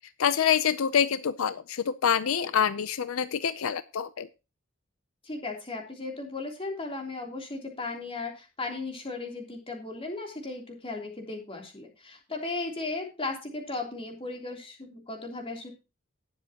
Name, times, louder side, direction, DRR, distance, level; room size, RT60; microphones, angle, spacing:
voice 1, 0.2-4.3, left 8 dB, 80° left, 14 dB, 0.5 m, -26 dB
voice 2, 5.2-15.7, left 3 dB, 25° left, 1 dB, 3.1 m, -36 dB
19.0 x 7.4 x 2.9 m, 0.30 s
head